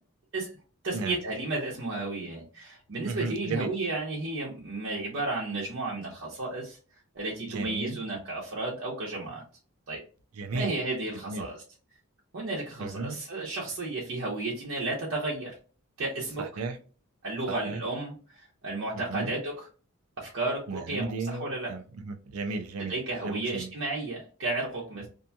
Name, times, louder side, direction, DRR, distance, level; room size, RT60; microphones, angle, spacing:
voice 1, 0.8-6.8 7.1-9.4 9.9-10.0 10.5-11.6 12.3-15.5 16.0-16.4 17.2-18.1 18.6-19.7 20.2-21.7 22.8-25.1, right 2 dB, 60° right, 0.8 m, -33 dB
voice 2, 3.1-3.7 7.5-8.0 10.3-10.7 11.1-11.5 12.8-13.2 16.4-16.8 17.5-17.8 18.9-19.4 20.7-23.0 23.2-23.7, right 3 dB, 85° right, 0.5 m, -34 dB
2.7 x 2.7 x 2.2 m
head